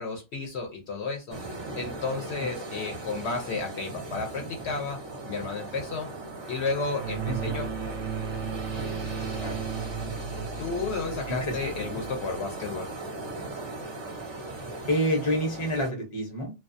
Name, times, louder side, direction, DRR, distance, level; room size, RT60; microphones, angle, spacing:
voice 1, 0.0-1.4 1.8-5.0 5.2-6.1 6.5-7.7 10.6-12.9, left 4 dB, 65° left, 2 dB, 0.8 m, -32 dB
sound 1, 1.3-15.9, right 2 dB, 40° right, 0.4 m, -38 dB
sound 2, 6.9-12.4, right 6 dB, 85° right, 1.0 m, -35 dB
voice 2, 11.3-12.0 14.9-16.5, equal, 30° left, 2 dB, 0.6 m, -28 dB
2.3 x 2.2 x 2.5 m, 0.27 s
omnidirectional pair, 1.3 m